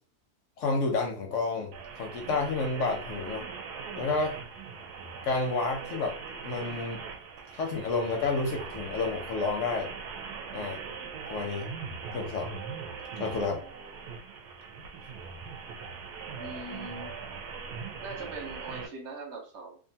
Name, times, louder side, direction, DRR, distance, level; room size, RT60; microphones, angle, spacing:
voice 1, 0.6-3.4 4.0-4.3 5.2-6.2 6.4-7.1 7.5-9.9 10.5-10.8 11.3-11.7 12.1-12.5 13.2-13.6, left 3 dB, 70° left, 2 dB, 0.7 m, -30 dB
sound 1, 1.7-18.9, right 5 dB, 90° right, 1.1 m, -41 dB
voice 2, 13.5-13.9 16.4-17.1 18.0-19.8, right 2 dB, 55° right, 0 dB, 1.1 m, -42 dB
2.6 x 2.4 x 2.7 m, 0.41 s
omnidirectional pair, 1.6 m